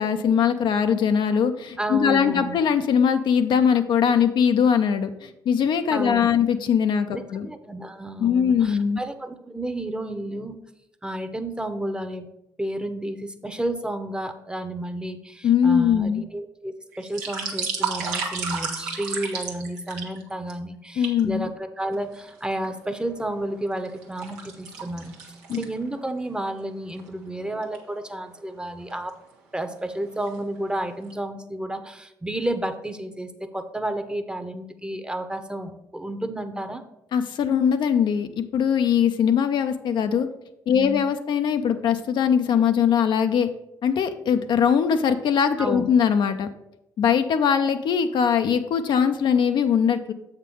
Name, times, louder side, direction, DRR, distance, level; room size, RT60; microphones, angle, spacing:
voice 1, 0.0-7.5 8.2-9.0 15.4-16.2 21.0-21.5 25.5-25.6 37.1-40.3 40.7-43.5 43.8-46.5 47.0-50.1, left 7 dB, 60° left, 7 dB, 0.5 m, -21 dB
voice 2, 1.8-2.6 5.9-6.4 7.1-10.6 11.0-12.3 12.6-25.1 25.5-29.1 29.5-36.8 40.7-41.0 45.6-45.8, right 1 dB, 10° right, 9 dB, 0.8 m, -31 dB
sound 1, 16.9-20.5 21.0-21.2 21.9-22.7 23.2-26.1 26.4-26.5 27.0-27.1 27.5-27.8 28.6-29.1 29.6-29.9 30.1-30.8 31.1-31.2, right 5 dB, 85° right, 1.1 m, -32 dB
7.3 x 3.7 x 6.2 m, 0.87 s
hypercardioid pair, 50°, 9 cm